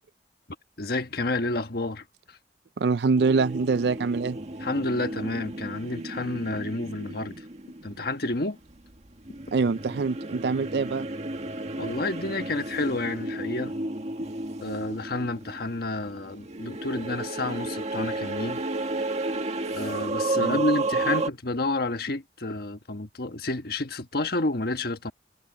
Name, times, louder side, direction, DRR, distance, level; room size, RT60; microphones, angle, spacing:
voice 1, 0.8-2.4 4.6-7.5 7.8-8.6 11.8-13.7 14.6-18.6 19.7-25.1, left 2 dB, 60° left, 1.4 m, -30 dB
voice 2, 2.8-4.4 9.5-11.1 20.4-20.6, right 4 dB, 65° right, 0.4 m, -24 dB
sound 1, 3.2-8.7 9.3-21.3, right 2 dB, 40° right, 1.9 m, -32 dB
head